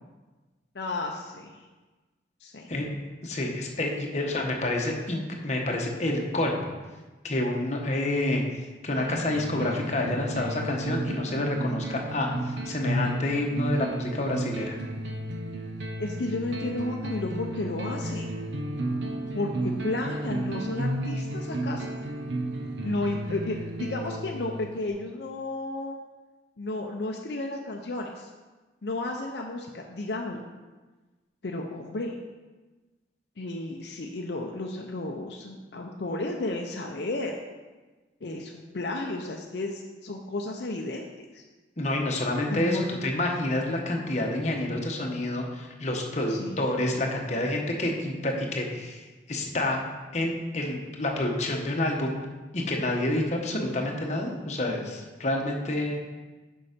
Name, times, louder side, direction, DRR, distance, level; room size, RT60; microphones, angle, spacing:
voice 1, 0.7-1.6 2.4-2.7 16.0-18.3 19.3-21.9 22.8-26.0 26.6-28.3 28.8-30.5 31.4-32.2 33.4-37.3 38.2-41.0 41.3-41.4 42.5-43.0 46.3-46.6 47.3-47.4, left 2 dB, 65° left, 1 dB, 0.6 m, -33 dB
voice 2, 3.2-6.7 7.2-14.7 41.8-49.0 49.3-49.8 50.1-52.2 52.5-56.0, left 1 dB, 40° left, 1 dB, 1.0 m, -28 dB
sound 1, 9.0-24.9, right 1 dB, 75° right, 0.8 m, -33 dB
6.8 x 5.5 x 5.1 m, 1.2 s
head